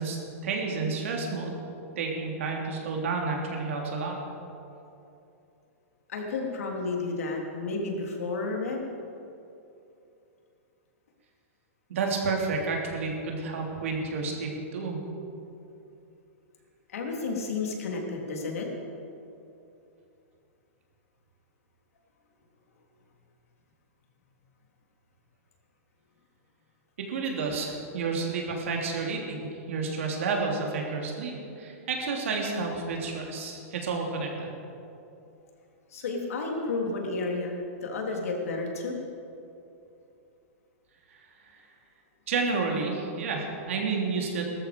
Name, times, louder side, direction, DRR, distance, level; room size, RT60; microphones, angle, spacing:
voice 1, 0.0-1.5 2.0-4.2 11.9-15.1 27.0-34.5 41.1-41.5 42.3-44.4, right 4 dB, 65° right, 0 dB, 3.2 m, -30 dB
voice 2, 6.1-8.9 16.9-18.7 35.9-39.0, left 3 dB, 80° left, 1 dB, 3.3 m, -31 dB
18.5 x 13.5 x 5.3 m, 2.7 s
supercardioid pair, 175°, 8 cm